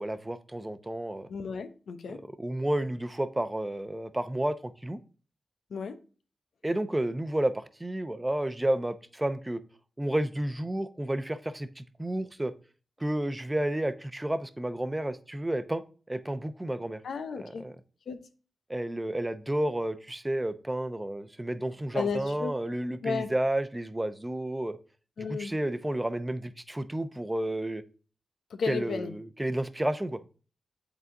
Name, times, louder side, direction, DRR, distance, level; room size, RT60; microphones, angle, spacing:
voice 1, 0.0-1.3 2.1-4.5 4.8-5.0 6.6-9.6 10.0-12.5 13.0-15.8 16.1-17.0 17.4-17.7 18.7-24.8 25.2-27.8 28.6-30.2, right 1 dB, 20° right, 0.7 m, -31 dB
voice 2, 1.3-2.2 5.7-6.0 17.0-17.7 18.1-18.2 21.9-22.5 23.0-23.3 25.2-25.5 28.5-29.1, left 5 dB, 80° left, 0.7 m, -33 dB
8.2 x 4.0 x 3.7 m
cardioid pair, 45°, 0 cm